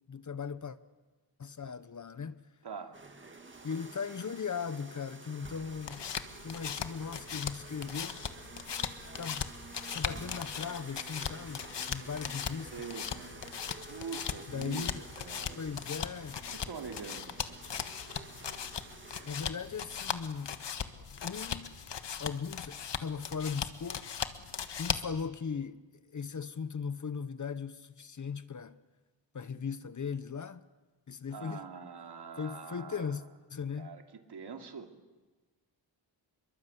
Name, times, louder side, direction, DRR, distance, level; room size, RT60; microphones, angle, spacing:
voice 1, 0.1-0.8 1.4-2.4 3.6-6.1 6.4-8.2 9.2-9.5 9.9-12.9 14.5-15.0 15.6-16.4 19.2-20.5 21.2-21.8 22.2-24.1 24.8-25.8 26.1-28.8 29.3-30.6 31.1-31.7 32.4-33.2 33.5-34.0, left 6 dB, 45° left, 0.9 m, -38 dB
voice 2, 2.6-3.0 12.7-13.4 13.9-15.6 16.5-17.6 31.3-33.1 33.8-34.9, right 5 dB, 65° right, 2.8 m, -44 dB
sound 1, 2.9-21.0, right 3 dB, 25° right, 2.0 m, -51 dB
sound 2, 5.6-25.2, left 7 dB, 70° left, 1.5 m, -39 dB
27.5 x 23.0 x 8.2 m
wide cardioid pair, 155°, 43 cm